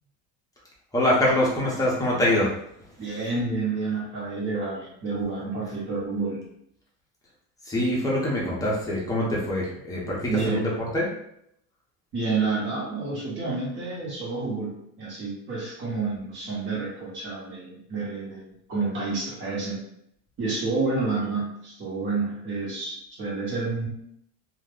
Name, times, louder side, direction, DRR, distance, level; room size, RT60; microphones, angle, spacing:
voice 1, 0.9-2.5 7.7-11.1, left 1 dB, 10° left, -5 dB, 0.7 m, -24 dB
voice 2, 3.0-6.4 10.3-10.7 12.1-19.8 20.4-23.9, right 3 dB, 35° right, -5 dB, 1.2 m, -29 dB
2.4 x 2.2 x 3.5 m, 0.73 s
cardioid pair, 150°, 34 cm